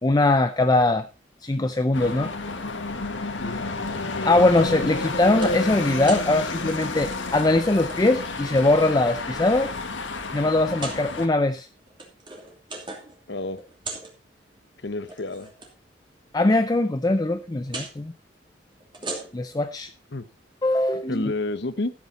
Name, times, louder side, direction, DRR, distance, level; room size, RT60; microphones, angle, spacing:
voice 1, 0.0-1.1 1.4-2.3 4.2-9.7 10.3-11.7 16.3-18.1 19.3-19.9 20.6-21.2, left 2 dB, 20° left, 0.5 m, -21 dB
sound 1, 1.9-11.3, left 3 dB, 80° left, 1.8 m, -30 dB
sound 2, 4.1-4.7 5.1-5.6 5.9-6.3 7.0-7.2 7.4-8.0 8.6-9.2 9.7-9.8 10.7-11.0 11.8-13.2 13.4-14.1 15.0-15.7 17.7-17.9 18.8-19.6, right 3 dB, 25° right, 2.8 m, -37 dB
voice 2, 13.3-13.6 14.8-15.5 20.1-20.2 21.1-21.9, left 2 dB, 60° left, 0.9 m, -29 dB
13.5 x 8.4 x 4.2 m
head